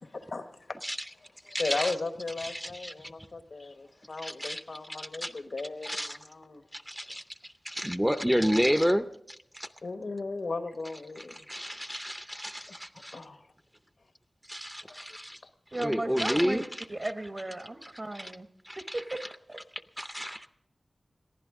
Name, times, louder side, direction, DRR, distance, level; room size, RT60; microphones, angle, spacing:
voice 1, 0.0-0.5 1.6-6.6 9.8-11.4 12.7-12.8 13.1-13.5 16.1-16.5, left 3 dB, 70° left, 1.1 m, -36 dB
voice 2, 1.5-1.9 2.4-3.1 4.2-4.6 5.0-5.3 5.8-6.2 6.7-9.7 11.2-13.2 14.5-15.4 15.7-16.8 18.1-18.3 18.6-19.3 20.0-20.5, equal, ahead, 0.6 m, -31 dB
voice 3, 15.7-16.6 16.9-18.5 18.8-19.2 19.5-19.6, right 2 dB, 35° right, 1.0 m, -35 dB
21.5 x 15.0 x 3.6 m
wide cardioid pair, 80°, 0 cm